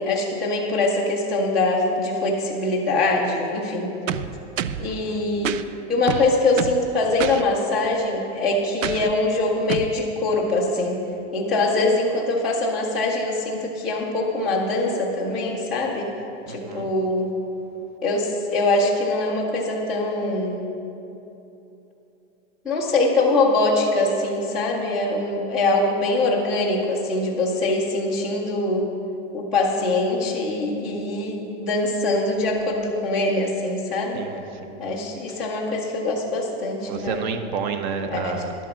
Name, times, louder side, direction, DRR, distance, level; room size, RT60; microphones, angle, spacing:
voice 1, 0.0-3.9 4.8-5.6 5.9-11.0 11.3-16.1 16.5-17.3 18.0-20.7 22.6-28.9 29.3-34.2 34.8-37.2 38.1-38.4, left 2 dB, ahead, -7 dB, 0.3 m, -23 dB
sound 1, 4.1-4.9 5.4-5.6 6.1-6.8 7.2-7.4 8.8-9.1 9.7-9.9, right 10 dB, 85° right, 0.6 m, -27 dB
voice 2, 4.9-5.2 16.5-16.9 34.1-34.8 36.9-38.5, right 5 dB, 40° right, 8 dB, 0.8 m, -30 dB
11.5 x 8.3 x 5.8 m, 2.9 s
supercardioid pair, 160°, 37 cm